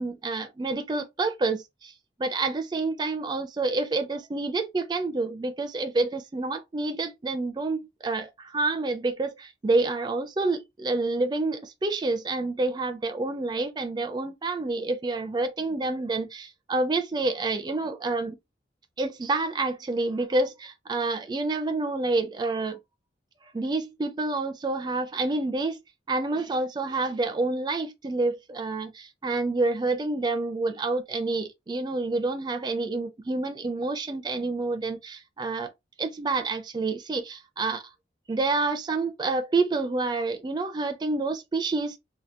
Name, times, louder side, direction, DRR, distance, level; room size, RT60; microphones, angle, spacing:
voice 1, 0.0-1.9 2.2-18.4 19.0-22.8 23.5-25.8 26.1-35.7 36.0-37.8 38.3-42.0, right 3 dB, 25° right, 0.4 m, -28 dB
2.8 x 2.1 x 3.2 m
head